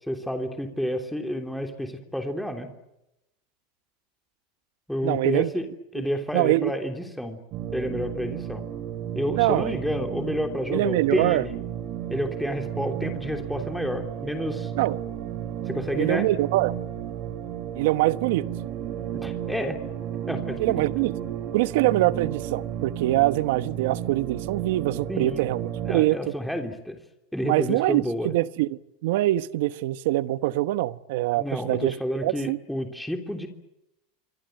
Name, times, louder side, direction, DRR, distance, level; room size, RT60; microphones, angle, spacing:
voice 1, 0.1-2.7 4.9-5.7 5.9-7.4 7.7-8.6 9.1-11.5 12.1-14.7 15.7-16.3 19.2-19.8 20.3-20.9 25.1-25.5 25.8-27.0 27.3-28.3 31.4-33.5, equal, ahead, 3.3 m, -30 dB
voice 2, 5.0-5.5 6.0-6.1 6.3-6.7 9.4-9.8 10.7-11.4 14.8-15.0 15.9-16.8 17.7-18.5 20.6-21.1 21.5-26.3 27.4-31.9 32.2-32.6, right 16 dB, 70° right, 1.1 m, -24 dB
sound 1, 7.5-26.0, right 10 dB, 50° right, 3.1 m, -33 dB
27.0 x 24.5 x 7.9 m
supercardioid pair, 120°, 0 cm